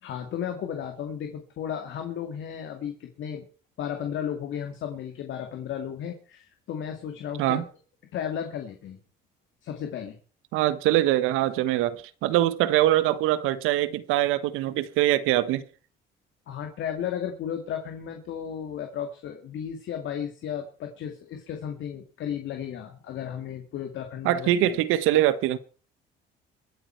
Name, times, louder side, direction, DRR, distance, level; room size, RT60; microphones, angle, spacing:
voice 1, 0.0-3.4 3.8-7.6 8.1-9.0 9.6-10.2 16.5-24.7, left 9 dB, 65° left, 2.3 m, -34 dB
voice 2, 10.5-15.6 24.2-25.6, right 13 dB, 80° right, 1.3 m, -23 dB
23.5 x 8.9 x 4.6 m
supercardioid pair, 70°, 21 cm